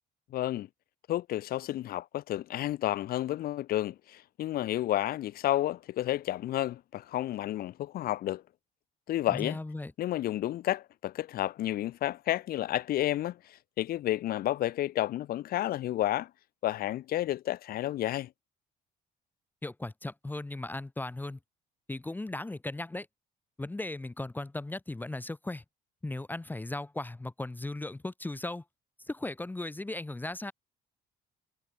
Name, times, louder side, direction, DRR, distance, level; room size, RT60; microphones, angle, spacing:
voice 1, 0.3-0.7 1.1-8.4 9.1-9.6 10.0-16.3 16.6-18.3, left 13 dB, 60° left, 0.8 m, -31 dB
voice 2, 9.3-9.9 19.6-21.4 21.9-23.1 23.6-25.6 26.0-28.6 29.0-30.5, left 2 dB, 10° left, 1.1 m, -37 dB
cardioid pair, 110°, 17 cm